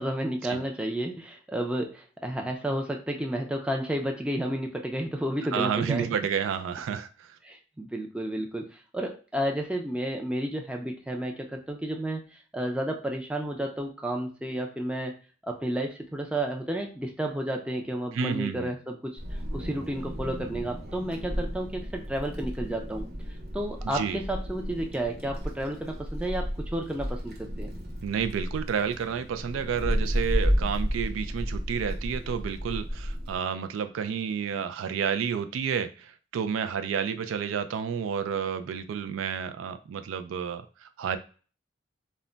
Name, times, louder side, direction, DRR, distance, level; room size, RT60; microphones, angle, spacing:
voice 1, 0.0-6.2 7.4-15.1 15.4-23.0 23.5-27.7, right 1 dB, 5° right, 2 dB, 0.4 m, -31 dB
voice 2, 5.5-7.3 18.1-18.7 23.8-24.2 28.0-41.2, right 7 dB, 80° right, 10 dB, 0.3 m, -30 dB
Wind, 19.2-33.4, equal, 55° right, 0.7 m, -32 dB
2.2 x 2.1 x 3.8 m, 0.37 s
head